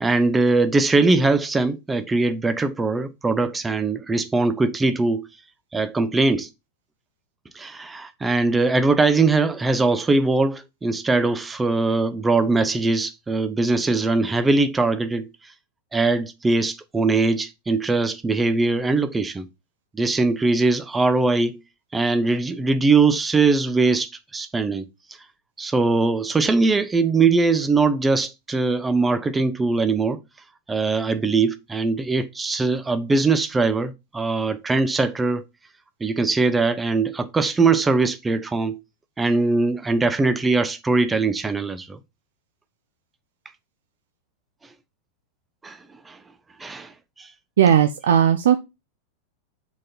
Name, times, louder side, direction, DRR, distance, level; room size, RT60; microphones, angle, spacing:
voice 1, 0.0-5.3 5.7-6.5 7.5-15.3 15.9-19.5 19.9-21.6 21.9-24.9 25.6-30.2 30.7-35.4 36.0-38.8 39.2-42.0 45.6-45.8 46.1-46.2 46.6-47.3, right 3 dB, 10° right, 0.6 m, -21 dB
voice 2, 47.6-48.6, right 9 dB, 60° right, 0.5 m, -16 dB
6.2 x 4.1 x 4.2 m
figure-of-eight pair, 90°, 0 cm